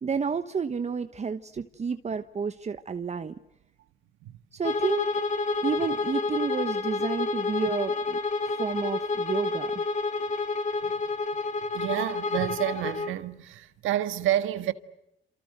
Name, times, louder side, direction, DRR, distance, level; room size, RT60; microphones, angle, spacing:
voice 1, 0.0-3.4 4.5-5.1 5.6-8.2 8.6-9.8, right 5 dB, 35° right, 1.1 m, -30 dB
Bowed string instrument, 4.6-13.2, left 3 dB, 35° left, 2.5 m, -29 dB
voice 2, 11.7-14.7, right 12 dB, 90° right, 1.7 m, -29 dB
28.5 x 28.5 x 6.5 m
cardioid pair, 90°, 20 cm